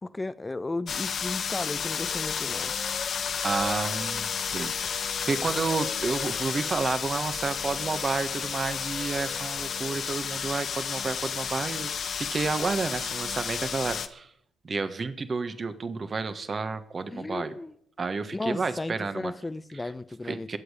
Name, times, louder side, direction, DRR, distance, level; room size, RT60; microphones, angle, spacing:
voice 1, 0.0-2.7 17.1-17.8 18.3-20.6, left 2 dB, 20° left, 0.8 m, -34 dB
sound 1, 0.9-14.1, left 7 dB, 55° left, 1.1 m, -32 dB
sound 2, 2.0-10.1, left 4 dB, 40° left, 2.1 m, -44 dB
voice 2, 3.4-12.0 12.3-14.3 14.6-17.5 18.0-19.3 20.2-20.6, right 4 dB, 40° right, 1.3 m, -30 dB
22.5 x 8.1 x 5.1 m
hypercardioid pair, 50°, 0 cm